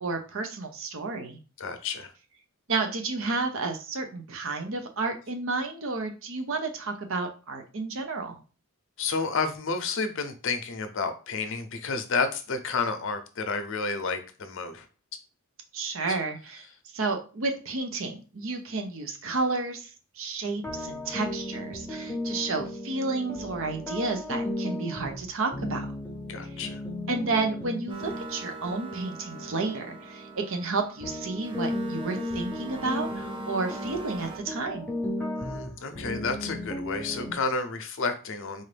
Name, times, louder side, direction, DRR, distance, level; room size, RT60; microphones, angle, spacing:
voice 1, 0.0-1.4 2.7-8.4 15.7-16.6 16.9-19.9 20.2-25.9 27.1-34.9, right 3 dB, 65° right, 5 dB, 0.7 m, -31 dB
voice 2, 1.6-2.1 9.0-14.9 16.1-16.2 26.3-26.8 35.4-38.6, left 4 dB, 65° left, 8 dB, 0.6 m, -30 dB
sound 1, 20.6-30.8 31.0-37.3, left 1 dB, 10° left, 0.7 m, -35 dB
sound 2, 27.9-34.4, right 3 dB, 25° right, 0.5 m, -42 dB
4.0 x 2.6 x 3.3 m, 0.34 s
head